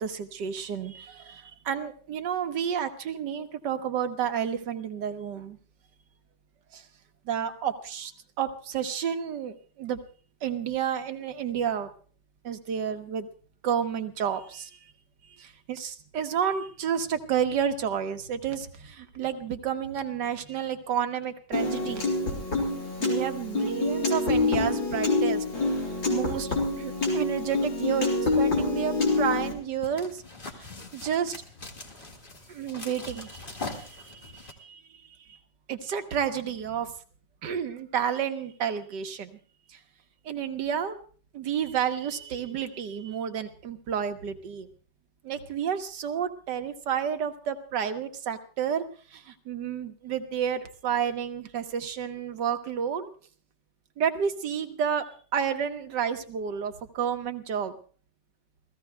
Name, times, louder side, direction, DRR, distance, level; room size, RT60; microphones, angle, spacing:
voice 1, 0.0-5.6 6.7-6.8 7.2-8.1 8.4-10.0 10.4-11.9 12.4-13.3 13.6-14.8 15.2-22.1 23.0-25.4 26.1-30.2 30.9-31.3 32.5-34.8 35.3-35.4 35.7-36.9 37.4-39.4 39.7-39.8 40.2-41.0 41.3-44.7 45.2-48.8 49.1-53.1 54.0-57.7, right 8 dB, 70° right, 7 dB, 1.7 m, -30 dB
Piano, 21.5-29.5, left 3 dB, 80° left, 4.7 m, -26 dB
sound 1, 29.5-34.5, left 3 dB, 30° left, 2.0 m, -42 dB
29.5 x 16.0 x 2.3 m, 0.42 s
omnidirectional pair, 2.0 m